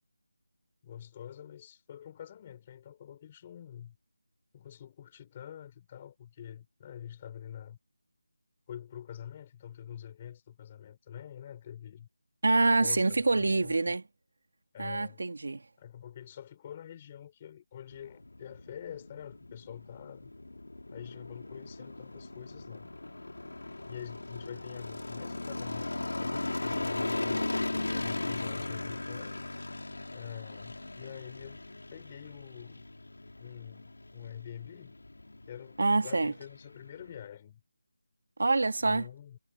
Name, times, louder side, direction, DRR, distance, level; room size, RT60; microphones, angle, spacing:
voice 1, 0.8-4.0 4.5-7.8 8.7-12.1 12.8-13.8 14.7-15.2 15.8-20.3 20.9-22.9 23.8-25.9 26.2-29.4 30.1-31.6 31.9-32.8 33.4-34.9 35.5-37.6 38.8-39.4, left 10 dB, 20° left, 6.7 m, -46 dB
voice 2, 12.4-14.0 14.8-15.6 35.8-36.3 38.4-39.1, right 3 dB, 60° right, 2.2 m, -26 dB
sound 1, 17.9-37.3, left 2 dB, 90° left, 3.7 m, -38 dB
figure-of-eight pair, 175°, 0 cm